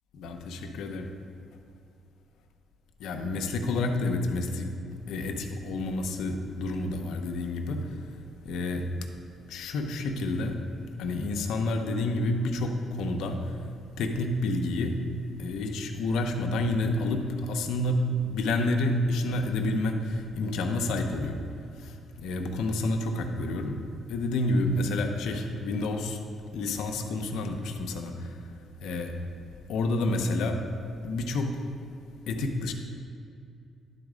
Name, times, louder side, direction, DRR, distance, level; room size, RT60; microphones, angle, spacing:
voice 1, 0.1-1.1 3.0-9.1 9.5-10.6 11.0-13.7 14.0-15.0 15.4-21.4 21.7-23.8 24.1-26.2 26.5-29.1 29.7-30.6 31.0-31.7 32.3-32.7, left 2 dB, 80° left, 4 dB, 0.7 m, -29 dB
11.0 x 4.0 x 5.0 m, 2.4 s
cardioid pair, 90°, 0 cm